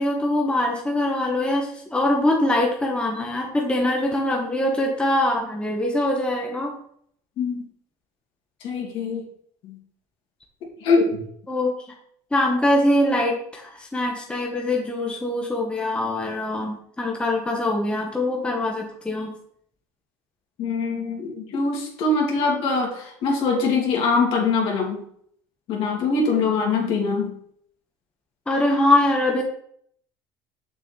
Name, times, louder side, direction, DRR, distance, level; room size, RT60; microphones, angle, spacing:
voice 1, 0.0-6.7 11.5-11.7 12.3-19.3 28.5-29.4, left 1 dB, 10° left, -1 dB, 1.4 m, -23 dB
voice 2, 8.6-9.2 9.6-9.7 10.8-11.0 20.6-25.0 25.7-27.3, left 4 dB, 60° left, -1 dB, 2.8 m, -23 dB
6.9 x 6.7 x 3.4 m, 0.66 s
supercardioid pair, 105°, 10 cm